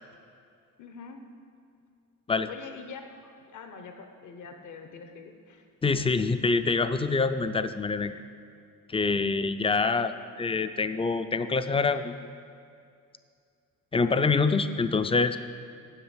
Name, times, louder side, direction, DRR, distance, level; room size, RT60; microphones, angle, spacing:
voice 1, 0.8-1.2 2.5-5.7, left 5 dB, 60° left, 6 dB, 1.1 m, -44 dB
voice 2, 5.8-8.1 8.9-10.1 10.4-12.1 13.9-15.4, left 4 dB, 15° left, 11 dB, 0.4 m, -25 dB
8.0 x 5.8 x 7.2 m, 2.4 s
cardioid pair, 90°, 34 cm